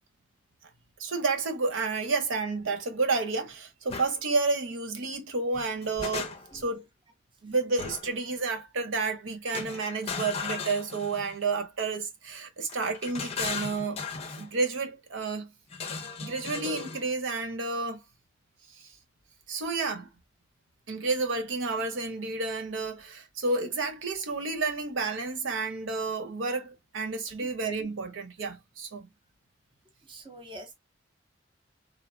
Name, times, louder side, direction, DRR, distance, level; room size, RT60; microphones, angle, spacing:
voice 1, 1.0-6.9 7.4-14.1 14.4-15.5 16.2-18.0 18.8-18.9 19.5-20.1 20.9-29.1, right 3 dB, 85° right, 0.7 m, -30 dB
sound 1, 3.9-4.1 5.5-6.7 7.8-8.2 9.5-11.4 12.7-14.5 15.7-17.0, left 5 dB, 30° left, 0.5 m, -36 dB
voice 2, 30.1-30.7, right 1 dB, 25° right, 0.6 m, -45 dB
3.2 x 2.0 x 2.4 m
head